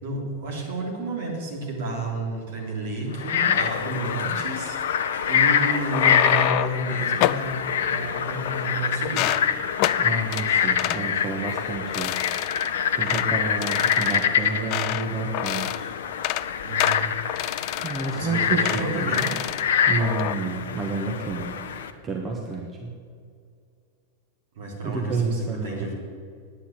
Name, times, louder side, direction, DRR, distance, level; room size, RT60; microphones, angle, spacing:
voice 1, 0.0-7.5 7.8-9.3 16.6-17.1 18.1-19.3 22.4-22.5 24.5-25.9, right 2 dB, 55° right, -1 dB, 3.3 m, -31 dB
Frog, 3.2-21.9, left 8 dB, 60° left, 0.7 m, -25 dB
sound 1, 5.7-6.8 7.2-7.5 8.1-8.8 9.0-9.5 9.8-10.0 10.3-10.5 10.8-11.0 11.5-11.7 11.9-12.7 13.1-13.3 13.6-15.1 15.3-15.8 16.1-16.5 16.8-18.2 18.6-18.9 19.1-19.6 20.0-20.3, left 15 dB, 45° left, 0.3 m, -27 dB
voice 2, 10.0-12.3 12.9-15.7 17.8-19.1 19.9-21.6 22.0-22.9 24.8-25.9, right 3 dB, 20° right, 1 dB, 1.4 m, -29 dB
9.9 x 9.1 x 8.2 m, 2.3 s
figure-of-eight pair, 90°, 0 cm